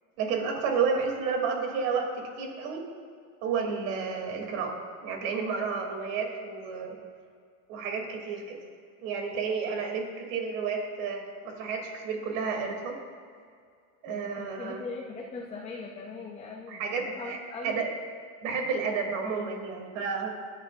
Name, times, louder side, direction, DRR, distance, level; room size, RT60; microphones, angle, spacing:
voice 1, 0.2-2.9 3.4-7.0 7.7-8.6 9.0-13.0 14.0-14.8 16.7-17.4 17.6-17.9 18.4-20.3, right 5 dB, 55° right, 2 dB, 2.8 m, -31 dB
voice 2, 14.1-17.8, left 4 dB, 15° left, -2 dB, 0.7 m, -40 dB
25.0 x 10.5 x 2.5 m, 2.2 s
supercardioid pair, 160°, 46 cm